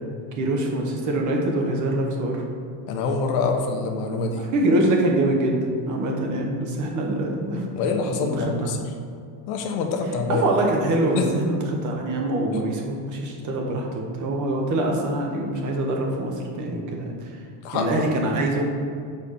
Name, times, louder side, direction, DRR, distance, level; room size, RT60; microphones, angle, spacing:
voice 1, 0.4-2.4 4.4-7.6 8.2-8.7 10.3-17.4 17.7-18.6, right 1 dB, 40° right, 1 dB, 0.9 m, -24 dB
voice 2, 2.9-4.5 7.7-8.8 9.5-10.4 11.2-11.3 17.6-18.0, left 4 dB, 65° left, 3 dB, 0.9 m, -25 dB
4.9 x 4.3 x 5.5 m, 2.3 s
cardioid pair, 155°, 48 cm